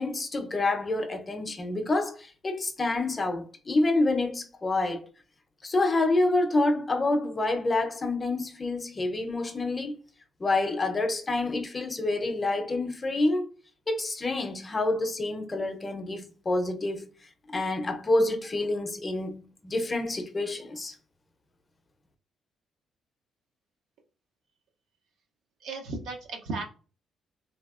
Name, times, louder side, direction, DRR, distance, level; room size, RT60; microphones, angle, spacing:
voice 1, 0.0-5.1 5.6-10.0 10.4-13.4 13.9-17.1 17.5-21.0, left 2 dB, 30° left, 0.5 m, -27 dB
voice 2, 25.6-26.6, right 3 dB, 80° right, 0.6 m, -35 dB
3.0 x 2.7 x 2.3 m
cardioid pair, 90°, 0 cm